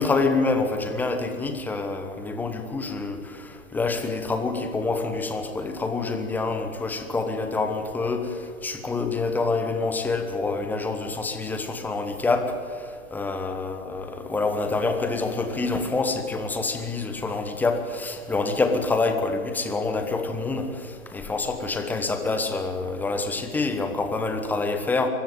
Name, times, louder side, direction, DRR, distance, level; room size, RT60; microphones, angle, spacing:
voice 1, 0.0-25.1, left 3 dB, 5° left, 6 dB, 1.1 m, -27 dB
23.0 x 13.5 x 9.2 m, 2.4 s
figure-of-eight pair, 130°, 41 cm